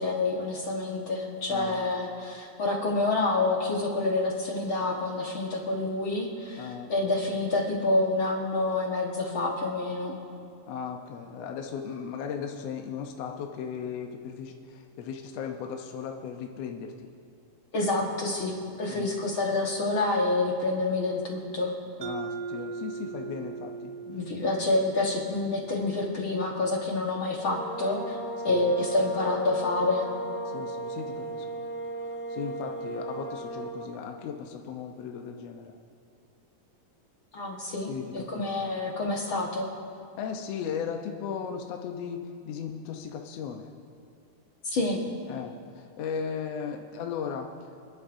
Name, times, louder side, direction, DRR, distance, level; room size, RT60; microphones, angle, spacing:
voice 1, 0.0-10.2 17.7-21.7 24.1-28.2 28.5-30.1 37.3-37.9 38.3-39.7 44.6-45.1, left 2 dB, 55° left, -2 dB, 1.6 m, -28 dB
voice 2, 1.5-1.8 6.6-6.9 10.7-17.1 18.9-19.1 22.0-23.9 28.5-28.6 30.4-31.7 32.0-35.8 37.9-38.5 40.1-43.7 45.3-47.9, left 7 dB, 75° left, 3 dB, 1.6 m, -37 dB
Mallet percussion, 22.0-26.6, right 4 dB, 80° right, 1.4 m, -39 dB
sound 1, 27.3-34.0, right 2 dB, 5° left, 2.5 m, -36 dB
26.5 x 11.0 x 2.6 m, 2.5 s
omnidirectional pair, 3.6 m